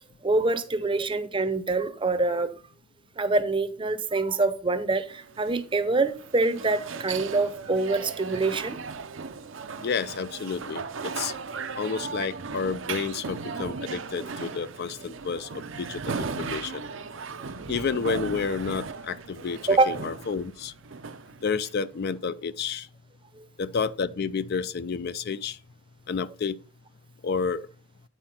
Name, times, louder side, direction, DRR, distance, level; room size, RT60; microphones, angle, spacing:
voice 1, 0.2-2.5 3.2-8.8 9.4-9.5 19.7-20.0 23.4-23.5, right 3 dB, 25° right, 0.6 m, -25 dB
sound 1, 5.1-22.1, right 5 dB, 70° right, 0.6 m, -37 dB
voice 2, 9.8-11.3 11.8-16.8 17.7-19.6 19.9-20.7 21.4-22.9 23.6-25.6 26.1-26.6 27.2-27.6, left 5 dB, 55° left, 0.4 m, -30 dB
9.3 x 4.4 x 5.6 m
head